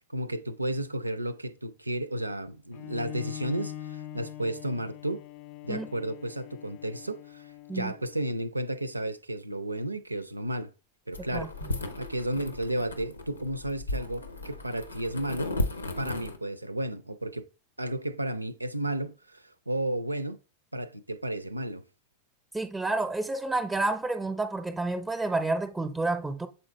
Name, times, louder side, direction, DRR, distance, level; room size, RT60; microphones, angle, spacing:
voice 1, 0.1-5.2 5.6-10.7 11.1-11.5 12.0-15.6 16.0-17.5 17.8-20.4 20.7-21.8, right 1 dB, 85° right, 0.5 m, -33 dB
Bowed string instrument, 2.7-8.4, left 12 dB, 40° left, 0.4 m, -43 dB
sound 1, 11.1-16.4, left 2 dB, 80° left, 0.8 m, -35 dB
voice 2, 11.3-11.8 22.5-26.5, right 2 dB, 10° right, 0.7 m, -30 dB
7.9 x 4.0 x 3.3 m
figure-of-eight pair, 90°, 0 cm